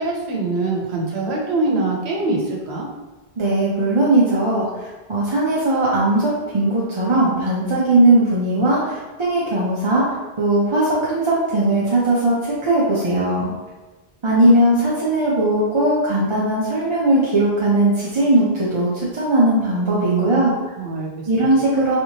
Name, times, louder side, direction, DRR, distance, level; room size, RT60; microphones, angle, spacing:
voice 1, 0.0-2.9 19.9-21.1 21.4-21.5, right 3 dB, 80° right, -2 dB, 1.0 m, -24 dB
voice 2, 3.4-10.0 10.4-13.5 14.2-20.5 21.3-22.0, right 1 dB, 40° right, -6 dB, 0.5 m, -18 dB
3.3 x 2.9 x 2.8 m, 1.2 s
omnidirectional pair, 1.1 m